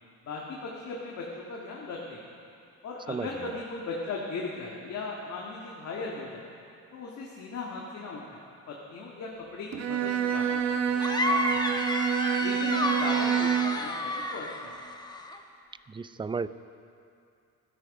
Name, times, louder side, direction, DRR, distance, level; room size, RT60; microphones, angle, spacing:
voice 1, 0.2-2.2 2.8-6.4 6.9-8.4 8.7-11.8 12.4-14.7, left 3 dB, 60° left, -3 dB, 1.9 m, -38 dB
Bowed string instrument, 9.7-13.9, right 8 dB, 65° right, 1.0 m, -27 dB
sound 1, 11.0-15.4, left 1 dB, 15° left, 1.0 m, -31 dB
voice 2, 15.9-16.5, right 5 dB, 15° right, 14 dB, 0.4 m, -32 dB
15.5 x 13.5 x 4.9 m, 2.5 s
cardioid pair, 90°, 30 cm